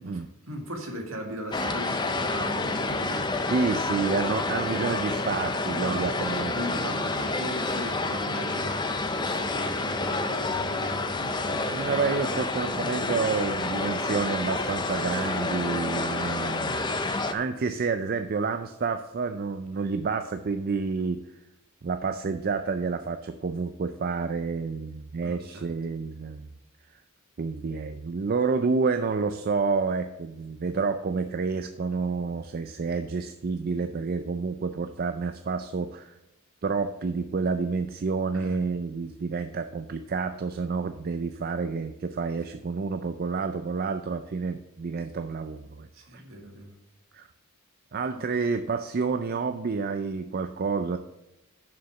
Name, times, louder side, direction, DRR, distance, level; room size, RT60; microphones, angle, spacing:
voice 1, 0.0-3.3 5.7-8.9 9.2-12.5 25.2-25.7 38.3-38.6 45.9-46.7 48.1-48.3, right 1 dB, 60° right, 1 dB, 1.9 m, -38 dB
sound 1, 1.5-17.3, left 3 dB, 20° left, 0.6 m, -29 dB
voice 2, 3.5-7.0 11.7-17.0 17.3-21.2 21.8-26.5 27.4-36.2 36.6-45.9 46.1-46.2 47.1-47.3 47.9-51.0, right 4 dB, 45° right, 9 dB, 0.4 m, -29 dB
7.0 x 6.4 x 7.0 m, 0.91 s
head